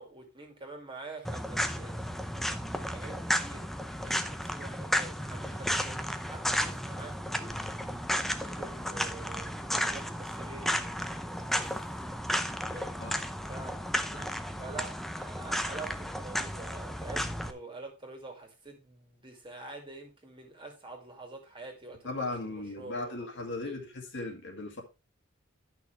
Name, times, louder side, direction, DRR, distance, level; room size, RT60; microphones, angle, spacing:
voice 1, 0.0-2.0 2.4-7.6 8.4-11.8 12.6-13.0 13.5-23.3 23.6-23.8, right 3 dB, 25° right, 2.3 m, -47 dB
sound 1, 1.2-17.5, equal, ahead, 0.6 m, -33 dB
voice 2, 22.0-24.8, left 2 dB, 60° left, 2.2 m, -37 dB
11.0 x 6.0 x 3.3 m
head